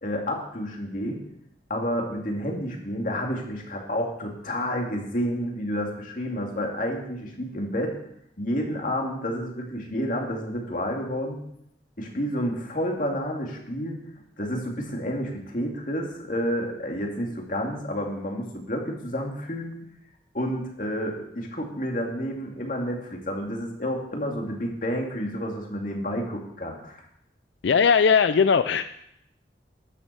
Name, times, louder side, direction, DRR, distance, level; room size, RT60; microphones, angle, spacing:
voice 1, 0.0-1.2 1.7-8.0 8.4-11.4 12.0-14.0 14.4-19.7 20.3-27.0, equal, 45° left, 1 dB, 2.4 m, -30 dB
voice 2, 27.6-28.8, left 6 dB, 85° left, 12 dB, 0.4 m, -19 dB
12.5 x 7.2 x 6.8 m, 0.76 s
head